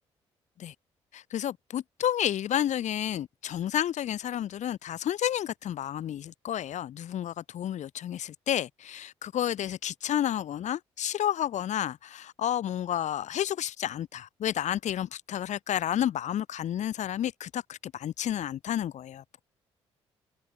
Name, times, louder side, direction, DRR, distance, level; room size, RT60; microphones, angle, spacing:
voice 1, 1.1-19.5, left 11 dB, 55° left, 2.0 m, -31 dB
figure-of-eight pair, 45°, 14 cm